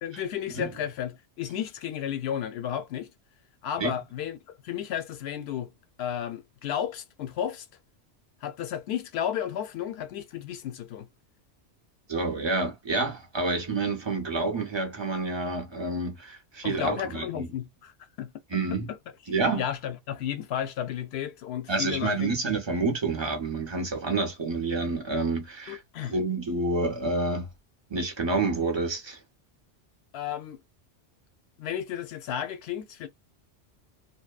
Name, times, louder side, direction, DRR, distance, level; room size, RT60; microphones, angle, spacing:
voice 1, 0.0-3.1 3.6-5.7 6.0-7.7 8.4-11.1 16.6-17.9 18.2-18.3 18.9-19.0 19.5-22.3 25.7-26.2 30.1-30.6 31.6-33.1, left 10 dB, 70° left, 0.8 m, -33 dB
voice 2, 12.1-17.5 18.5-18.9 19.3-19.6 21.7-27.5 27.9-29.2, right 3 dB, 35° right, 0.5 m, -28 dB
2.7 x 2.1 x 2.3 m
omnidirectional pair, 1.2 m